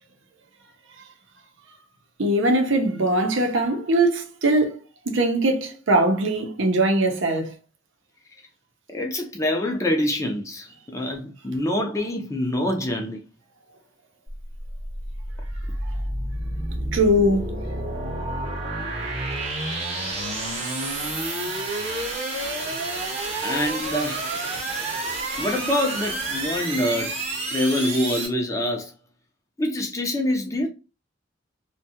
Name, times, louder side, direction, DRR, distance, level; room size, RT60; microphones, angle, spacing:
voice 1, 2.2-4.8 5.1-7.5 16.9-17.5 20.4-20.5, right 1 dB, 85° right, 0.7 m, -21 dB
voice 2, 8.9-13.2 20.6-20.8 23.4-24.2 25.4-27.2 27.5-28.9 29.6-30.7, left 1 dB, 15° left, 0.5 m, -25 dB
sound 1, 14.3-28.3, right 2 dB, 35° right, 0.8 m, -29 dB
2.6 x 2.2 x 2.7 m
head